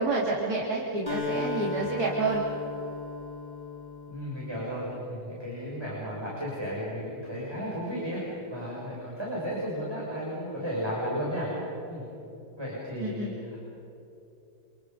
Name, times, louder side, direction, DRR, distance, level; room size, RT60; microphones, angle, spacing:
voice 1, 0.0-2.4 13.0-13.3, right 3 dB, 75° right, -4 dB, 3.4 m, -28 dB
Acoustic guitar, 1.1-4.9, left 3 dB, 30° left, 4.1 m, -36 dB
voice 2, 4.1-12.1 12.6-13.6, equal, 15° right, -6 dB, 6.2 m, -34 dB
30.0 x 28.0 x 5.4 m, 2.9 s
omnidirectional pair, 1.7 m